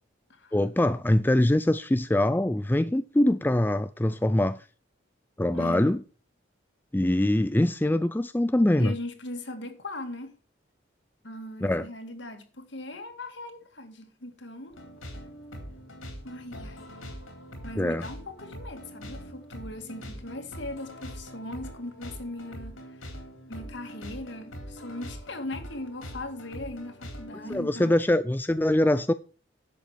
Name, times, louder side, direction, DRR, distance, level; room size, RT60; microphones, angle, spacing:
voice 1, 0.5-4.6 5.4-6.0 6.9-8.9 11.6-11.9 17.8-18.1 27.3-29.1, left 1 dB, 10° left, 0.4 m, -23 dB
voice 2, 5.5-5.9 8.8-10.3 11.2-14.8 16.2-16.9 17.6-22.8 23.5-28.0, left 1 dB, 60° left, 2.3 m, -39 dB
sound 1, 14.7-27.6, equal, 90° left, 3.9 m, -43 dB
11.5 x 7.7 x 4.7 m
head